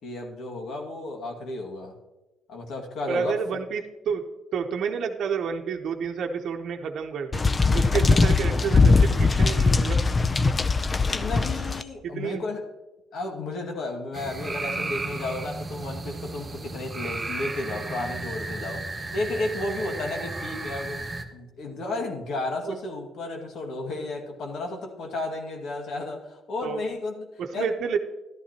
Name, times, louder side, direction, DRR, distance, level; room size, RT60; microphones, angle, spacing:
voice 1, 0.0-2.0 2.5-3.4 11.1-12.7 13.1-21.0 21.3-27.7, left 2 dB, 70° left, 2 dB, 2.0 m, -33 dB
voice 2, 3.1-7.4 7.7-10.1 12.0-12.4 22.7-22.8 26.6-26.8 27.4-28.0, right 6 dB, 70° right, 3 dB, 0.8 m, -29 dB
sound 1, 7.3-11.8, left 3 dB, 30° left, 0.5 m, -20 dB
sound 2, 14.1-21.2, right 3 dB, 25° right, 1.5 m, -34 dB
13.0 x 11.5 x 2.9 m, 1.1 s
cardioid pair, 90°, 0 cm